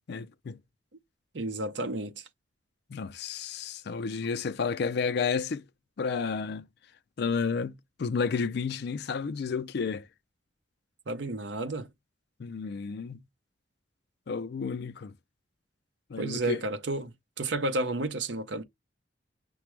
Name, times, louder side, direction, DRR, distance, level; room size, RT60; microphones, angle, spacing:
voice 1, 0.1-0.6 2.9-5.6 6.0-6.7 7.2-10.0 12.4-13.2 14.3-15.1 16.1-16.6, left 5 dB, 60° left, 0.4 m, -31 dB
voice 2, 1.3-2.2 11.1-11.9 16.2-17.1 17.4-18.6, right 2 dB, 70° right, 0.7 m, -31 dB
5.9 x 2.2 x 3.1 m
head